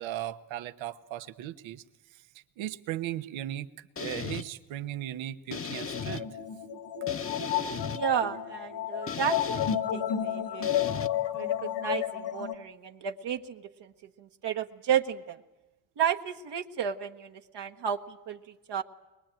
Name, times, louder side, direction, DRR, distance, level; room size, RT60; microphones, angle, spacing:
voice 1, 0.0-1.8 2.1-6.3, right 13 dB, 75° right, 10 dB, 1.2 m, -37 dB
sound 1, 4.0-4.4 5.5-6.2 7.1-8.0 9.1-9.8 10.6-11.1, left 5 dB, 30° left, 1.1 m, -36 dB
sound 2, 5.9-12.5, left 10 dB, 65° left, 2.1 m, -31 dB
voice 2, 7.8-10.8 11.3-13.9 14.2-15.4 16.0-18.4 18.7-18.8, right 8 dB, 60° right, 4 dB, 1.4 m, -32 dB
22.0 x 20.5 x 9.0 m, 1.1 s
supercardioid pair, 70°, 47 cm